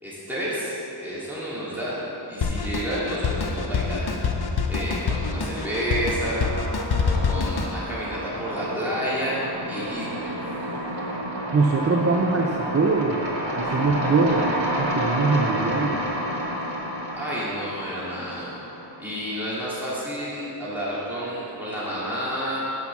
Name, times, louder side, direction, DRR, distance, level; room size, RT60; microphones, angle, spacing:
voice 1, 0.0-2.0 2.3-6.5 7.0-9.4 9.7-10.3 17.2-18.5 19.0-22.6, equal, 5° right, -9 dB, 2.4 m, -30 dB
Drum kit, 2.4-7.7, left 5 dB, 55° left, 0.8 m, -26 dB
sound 1, 3.2-3.7 4.0-19.2, equal, 75° right, 1.6 m, -31 dB
voice 2, 11.5-13.2 13.6-16.0, right 4 dB, 35° right, 1 dB, 0.5 m, -22 dB
8.4 x 5.8 x 7.1 m, 3.0 s
wide cardioid pair, 85°, 46 cm